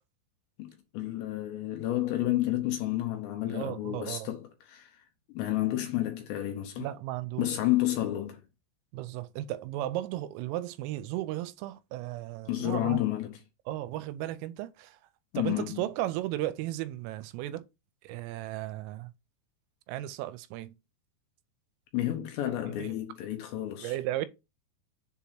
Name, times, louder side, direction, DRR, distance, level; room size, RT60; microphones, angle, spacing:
voice 1, 0.6-4.9 5.3-6.9 7.4-8.4 12.5-13.4 15.3-15.9 21.9-24.0, left 14 dB, 75° left, 2.8 m, -30 dB
voice 2, 3.5-4.3 6.8-7.5 8.9-13.0 13.7-15.0 15.4-17.6 18.0-19.1 19.9-20.8 22.8-23.0 23.8-24.3, right 15 dB, 85° right, 3.2 m, -35 dB
7.3 x 2.9 x 5.8 m
omnidirectional pair, 5.8 m